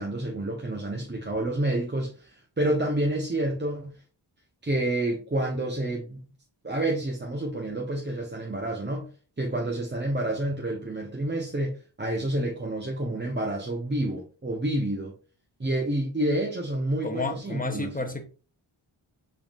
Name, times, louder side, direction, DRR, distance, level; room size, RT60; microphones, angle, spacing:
voice 1, 0.0-4.0 4.6-6.2 6.6-9.1 9.4-15.1 15.6-18.1, right 1 dB, 20° right, 0.9 m, -29 dB
voice 2, 17.0-18.2, left 2 dB, 15° left, 0.8 m, -31 dB
4.5 x 3.7 x 2.4 m
wide cardioid pair, 55°, 48 cm